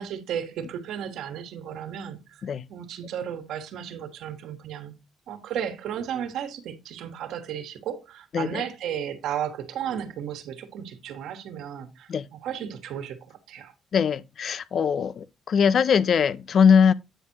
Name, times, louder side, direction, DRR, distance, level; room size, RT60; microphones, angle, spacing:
voice 1, 0.0-4.9 5.3-13.7, right 9 dB, 80° right, 1.4 m, -34 dB
voice 2, 13.9-16.9, left 7 dB, 55° left, 0.4 m, -21 dB
9.0 x 6.1 x 2.9 m
cardioid pair, 90°, 0 cm